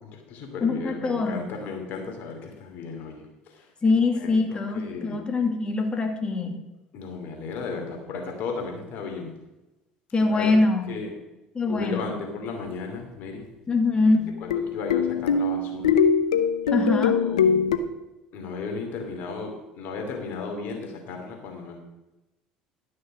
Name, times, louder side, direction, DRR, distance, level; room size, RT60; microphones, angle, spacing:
voice 1, 0.0-3.6 4.2-5.2 6.9-9.4 10.3-10.6 10.9-11.1 11.7-13.4 14.4-16.0 16.7-16.8 17.1-17.8 18.3-21.8, left 4 dB, 60° left, 2 dB, 2.7 m, -35 dB
voice 2, 0.6-1.5 3.8-6.6 10.1-11.0 11.5-12.2 13.7-14.3 16.7-17.2, left 3 dB, 25° left, 4 dB, 2.3 m, -23 dB
sound 1, 14.1-17.8, left 6 dB, 90° left, 0.7 m, -22 dB
12.0 x 6.4 x 6.2 m, 1.0 s
hypercardioid pair, 70°, 3 cm